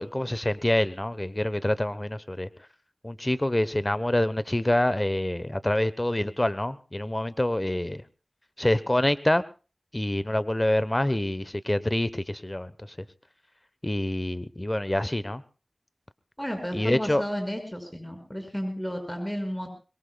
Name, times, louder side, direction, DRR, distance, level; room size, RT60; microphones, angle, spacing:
voice 1, 0.0-2.5 3.0-8.0 8.6-9.4 9.9-12.9 13.8-15.4 16.7-17.2, left 1 dB, 25° left, 15 dB, 1.1 m, -26 dB
voice 2, 16.4-19.7, equal, 10° left, 5 dB, 6.1 m, -32 dB
24.5 x 22.0 x 2.4 m, 0.34 s
wide cardioid pair, 50°, 0 cm